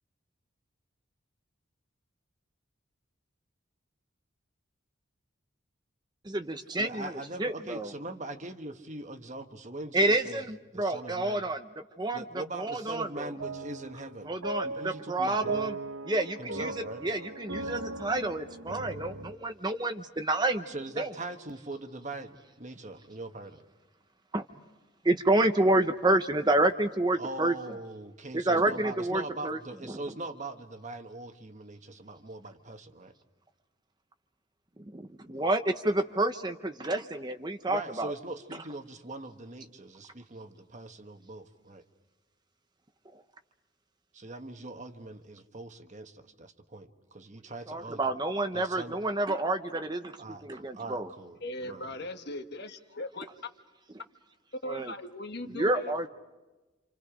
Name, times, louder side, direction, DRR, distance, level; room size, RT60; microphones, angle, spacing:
voice 1, 6.2-7.1 7.4-7.9 9.9-11.7 12.0-12.2 12.5-13.3 14.3-15.7 16.0-16.7 17.0-20.7 21.0-21.1 24.3-24.4 25.0-27.5 28.3-29.6 29.9-30.0 34.9-38.1 47.7-50.2 50.4-51.1 54.7-54.9 55.4-56.1, right 2 dB, 20° right, 7 dB, 0.8 m, -29 dB
voice 2, 6.8-10.5 10.7-11.5 12.1-14.3 14.6-15.6 16.4-17.1 20.7-23.6 27.2-33.1 37.7-41.8 44.1-48.2 48.5-49.0 50.2-51.9, right 2 dB, 35° right, 7 dB, 1.3 m, -41 dB
sound 1, 13.4-19.3, right 3 dB, 85° right, 1.1 m, -38 dB
voice 3, 51.4-53.3 54.6-55.9, left 1 dB, 50° left, 7 dB, 1.4 m, -39 dB
28.5 x 27.5 x 5.0 m, 1.1 s
head